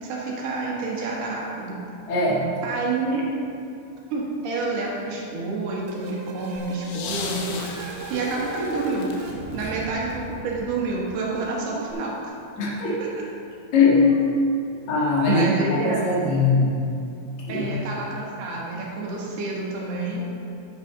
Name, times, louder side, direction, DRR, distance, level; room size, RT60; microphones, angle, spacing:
voice 1, 0.0-1.8 2.6-3.2 4.1-9.1 9.5-12.4 12.8-13.1 15.3-16.1 17.5-20.3, right 3 dB, 70° right, -4 dB, 3.4 m, -28 dB
voice 2, 2.1-2.4 9.6-9.7 12.6-13.0 13.7-14.0 14.9-16.8 17.4-17.7, left 3 dB, 50° left, -6 dB, 2.8 m, -21 dB
sound 1, 5.9-11.5, right 3 dB, 90° right, 3.4 m, -38 dB
sound 2, 6.6-10.7 11.9-12.0, left 4 dB, 85° left, 3.2 m, -37 dB
9.8 x 8.3 x 3.9 m, 2.6 s
omnidirectional pair, 5.0 m